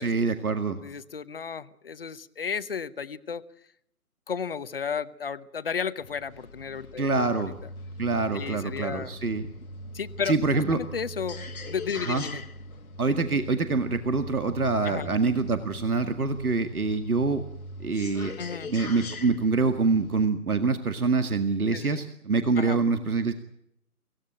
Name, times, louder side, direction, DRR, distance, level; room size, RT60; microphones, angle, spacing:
voice 1, 0.0-0.8 7.0-7.5 8.0-9.5 10.3-10.8 12.1-12.2 13.0-17.4 17.8-18.3 18.7-23.3, right 4 dB, 70° right, 9 dB, 2.1 m, -25 dB
voice 2, 0.8-3.4 4.3-7.4 8.3-9.1 9.9-12.4 14.8-15.1 18.4-18.7 21.7-22.0 22.6-22.8, left 6 dB, 40° left, 15 dB, 1.0 m, -33 dB
sound 1, 6.0-20.3, left 1 dB, 65° left, 1.7 m, -41 dB
25.5 x 16.5 x 8.9 m, 0.76 s
figure-of-eight pair, 145°, 45 cm